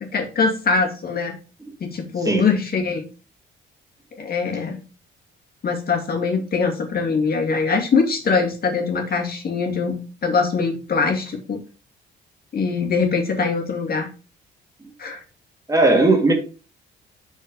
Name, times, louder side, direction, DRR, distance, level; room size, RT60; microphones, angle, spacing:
voice 1, 0.1-1.3 1.8-3.0 4.1-4.8 5.6-11.6 12.5-14.1 15.0-15.2, left 4 dB, 50° left, 2.1 m, -22 dB
voice 2, 15.7-16.3, right 2 dB, 15° right, 2.5 m, -16 dB
6.3 x 4.4 x 5.2 m
cardioid pair, 90°, 20 cm